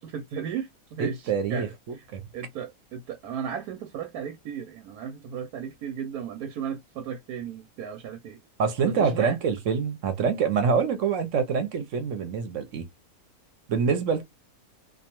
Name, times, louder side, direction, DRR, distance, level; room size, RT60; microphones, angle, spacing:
voice 1, 0.0-2.1 2.3-8.4 8.8-9.4, right 8 dB, 90° right, 1.1 m, -35 dB
voice 2, 1.0-1.7 2.1-2.2 8.6-12.8 13.7-14.2, right 6 dB, 65° right, 0.9 m, -25 dB
2.5 x 2.2 x 2.8 m
omnidirectional pair, 1.6 m